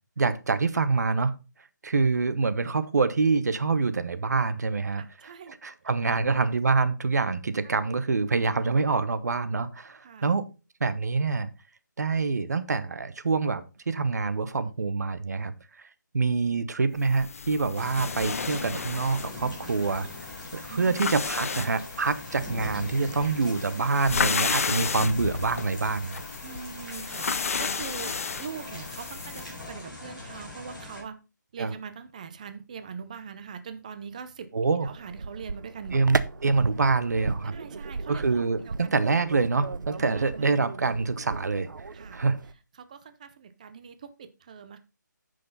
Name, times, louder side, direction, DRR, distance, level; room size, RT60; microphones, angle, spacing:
voice 1, 0.2-1.3 1.8-10.5 10.8-11.5 12.0-15.5 16.1-20.1 20.5-26.2 31.6-31.7 34.5-34.9 35.9-37.5 38.1-41.7 42.1-42.4, right 4 dB, 60° right, 13 dB, 1.0 m, -26 dB
voice 2, 4.9-5.6 6.1-6.3 10.0-10.3 19.5-19.8 20.7-21.0 23.0-23.3 26.4-28.1 28.4-31.2 31.5-34.5 34.8-36.0 37.4-38.9 40.0-40.5 41.9-42.2 42.8-44.8, right 6 dB, 20° right, 10 dB, 0.6 m, -42 dB
Pulling a blanket off of a chair, 17.0-29.6, left 5 dB, 45° left, 0.6 m, -33 dB
sound 1, 17.7-31.0, left 2 dB, ahead, 4.1 m, -42 dB
sound 2, 34.8-42.5, right 4 dB, 75° right, 0.7 m, -35 dB
9.9 x 6.5 x 4.0 m, 0.30 s
hypercardioid pair, 170°, 10 cm